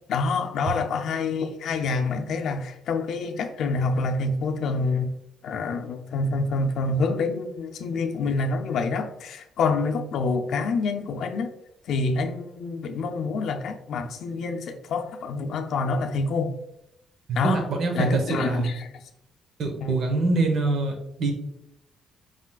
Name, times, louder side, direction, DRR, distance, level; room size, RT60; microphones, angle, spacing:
voice 1, 0.1-5.1 5.4-11.5 11.8-16.5 17.4-17.7 17.9-18.9 19.8-19.9, left 3 dB, 75° left, 0.5 m, -27 dB
voice 2, 17.3-18.7 19.6-21.3, right 3 dB, 65° right, 1.0 m, -25 dB
4.9 x 3.7 x 2.3 m
cardioid pair, 90°, 0 cm